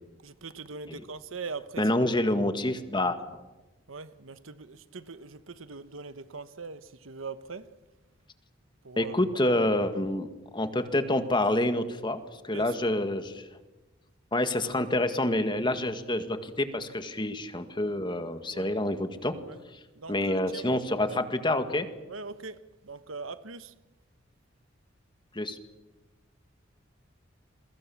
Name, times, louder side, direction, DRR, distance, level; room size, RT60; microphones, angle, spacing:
voice 1, 0.2-1.8 3.9-7.7 8.8-9.6 12.5-12.8 14.4-14.5 18.5-18.7 19.5-19.6 19.9-21.3 22.1-23.7, right 4 dB, 85° right, 1.2 m, -42 dB
voice 2, 1.8-3.2 9.0-10.3 10.5-13.5 14.3-19.4 20.1-21.9 25.4-25.6, left 1 dB, 25° left, 1.8 m, -27 dB
29.0 x 22.5 x 7.2 m
head